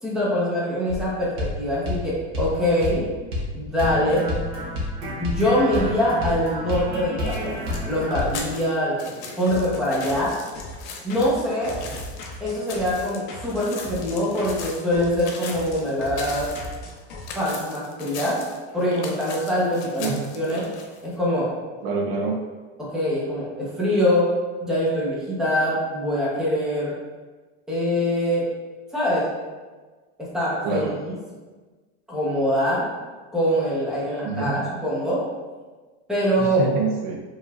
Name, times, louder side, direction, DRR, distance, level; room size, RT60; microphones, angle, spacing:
voice 1, 0.0-3.1 3.5-4.3 5.2-7.5 7.8-10.3 11.0-11.8 12.4-16.5 17.3-18.4 18.7-20.1 20.3-20.6 21.0-21.5 22.9-24.3 24.6-26.9 27.7-28.4 28.9-29.3 30.3-31.1 32.1-32.9 33.3-35.2 36.1-36.6, equal, ahead, -8 dB, 0.9 m, -23 dB
sound 1, 0.9-1.1 1.4-1.6 1.9-2.0 2.3-2.5 2.8-3.0 3.3-3.5 3.8-8.4, left 1 dB, 35° right, 1.1 m, -29 dB
sound 2, 7.2-21.1, left 5 dB, 75° left, 0.9 m, -39 dB
sound 3, 9.4-17.3, left 1 dB, 30° left, 0.6 m, -39 dB
voice 2, 21.8-22.4 30.6-30.9 34.2-34.6 36.4-37.2, right 4 dB, 60° right, 2 dB, 0.6 m, -26 dB
5.2 x 3.1 x 2.4 m, 1.3 s
supercardioid pair, 160°, 34 cm